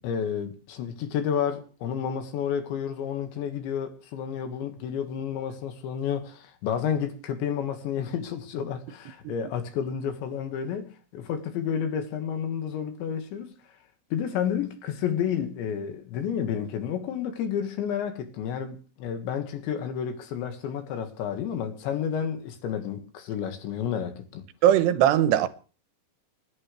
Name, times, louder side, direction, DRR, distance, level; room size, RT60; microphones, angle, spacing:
voice 1, 0.0-13.5 14.1-24.5, left 8 dB, 85° left, 4.0 m, -30 dB
voice 2, 24.6-25.5, right 11 dB, 75° right, 2.9 m, -19 dB
29.5 x 11.0 x 3.3 m
omnidirectional pair, 5.1 m